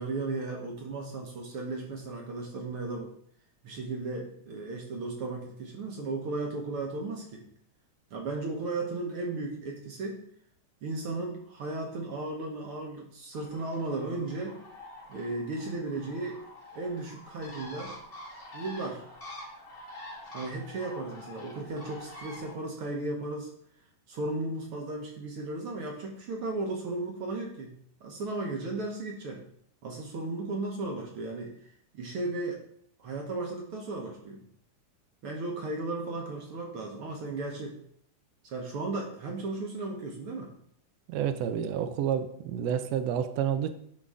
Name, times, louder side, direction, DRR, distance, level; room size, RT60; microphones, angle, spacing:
voice 1, 0.0-3.1 3.6-7.4 8.1-10.2 10.8-14.6 15.1-16.4 16.7-17.9 18.5-19.0 20.3-23.5 24.1-27.7 28.0-29.4 29.8-31.5 31.9-32.6 33.0-34.4 35.2-37.8 38.4-40.5, right 2 dB, 60° right, 1 dB, 1.6 m, -35 dB
Bird, 13.3-22.5, left 1 dB, 60° left, 0.5 m, -46 dB
voice 2, 41.1-43.7, right 9 dB, 80° right, 9 dB, 1.5 m, -29 dB
9.7 x 3.8 x 4.9 m, 0.67 s
omnidirectional pair, 3.6 m